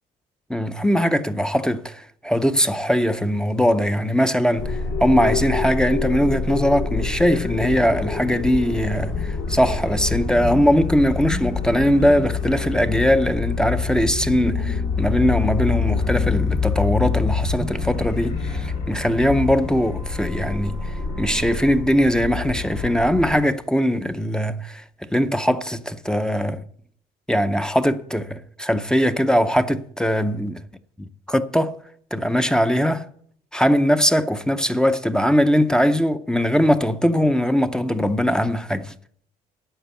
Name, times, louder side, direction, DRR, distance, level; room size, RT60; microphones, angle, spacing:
voice 1, 0.5-26.6 27.3-30.7 31.0-31.8 32.1-33.1 33.5-38.9, equal, 5° left, 0.6 m, -21 dB
sound 1, 4.6-23.3, left 4 dB, 80° left, 6.1 m, -26 dB
11.5 x 7.7 x 6.9 m
cardioid pair, 110°, 17 cm